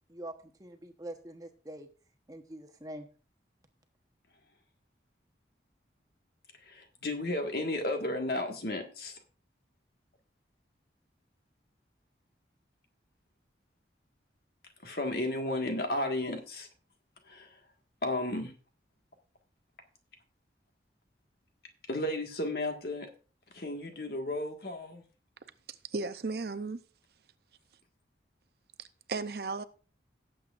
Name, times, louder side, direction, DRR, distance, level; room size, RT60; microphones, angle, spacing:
voice 1, 0.1-1.9 2.3-3.1, right 1 dB, 20° right, 1.0 m, -44 dB
voice 2, 6.6-9.2 14.8-16.7 17.2-17.6 18.0-18.5 21.9-23.1 23.5-25.0, left 1 dB, 55° left, 1.7 m, -33 dB
voice 3, 25.8-26.8 28.8-29.6, right 3 dB, 55° right, 0.6 m, -35 dB
18.0 x 7.8 x 2.5 m
head